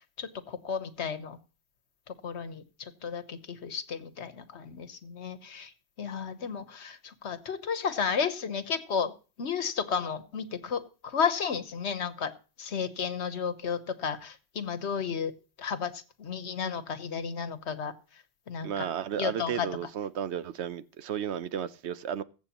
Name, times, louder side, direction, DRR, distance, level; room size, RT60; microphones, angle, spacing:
voice 1, 0.2-1.4 2.2-5.7 6.0-9.1 9.4-12.3 12.6-15.3 15.6-15.9 16.2-17.9 18.5-18.7 19.2-19.7, left 6 dB, 90° left, 1.3 m, -33 dB
voice 2, 18.6-22.2, right 9 dB, 80° right, 1.0 m, -33 dB
21.5 x 8.0 x 2.9 m
omnidirectional pair, 1.1 m